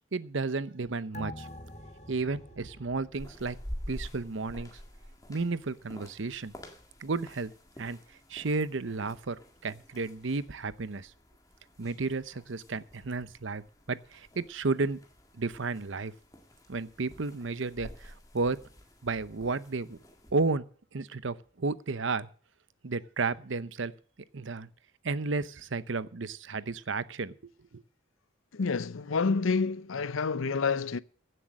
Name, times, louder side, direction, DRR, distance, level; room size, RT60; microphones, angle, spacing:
voice 1, 0.1-1.5 2.1-3.6 3.9-4.8 5.3-6.5 7.0-7.5 7.8-8.0 8.3-11.1 11.8-13.6 13.9-15.0 15.3-16.1 16.7-18.6 19.0-20.0 20.3-20.7 20.9-22.3 22.8-23.9 24.3-24.7 25.0-27.8, right 3 dB, 70° right, 0.7 m, -32 dB
sound 1, 1.1-4.1 4.4-4.5, left 1 dB, 35° left, 1.7 m, -46 dB
sound 2, 3.1-20.3, equal, 15° left, 1.8 m, -48 dB
voice 2, 28.5-31.0, left 4 dB, 85° left, 0.6 m, -28 dB
16.0 x 7.7 x 6.4 m
head